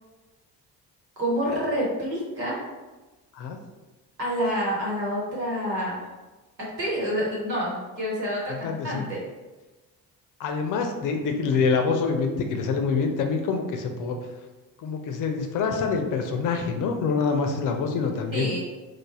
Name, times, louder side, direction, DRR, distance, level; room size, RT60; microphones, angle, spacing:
voice 1, 1.2-2.6 4.2-6.0 6.8-9.2 18.3-18.6, equal, 85° right, -6 dB, 0.9 m, -28 dB
voice 2, 8.5-9.0 10.4-14.2 14.8-18.6, left 5 dB, 40° left, 4 dB, 0.5 m, -26 dB
3.2 x 2.1 x 4.1 m, 1.2 s
figure-of-eight pair, 45°, 49 cm